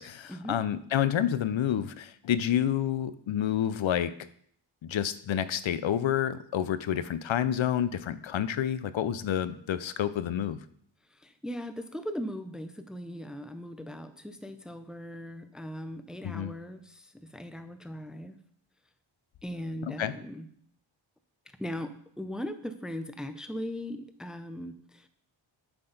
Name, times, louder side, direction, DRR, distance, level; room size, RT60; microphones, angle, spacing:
voice 1, 0.0-4.1 4.8-10.6 16.2-16.5 20.0-20.1, left 10 dB, 75° left, 14 dB, 0.5 m, -29 dB
voice 2, 11.1-18.4 19.4-20.5 21.6-25.1, equal, ahead, 10 dB, 0.5 m, -39 dB
7.7 x 6.0 x 3.9 m, 0.63 s
wide cardioid pair, 90°, 48 cm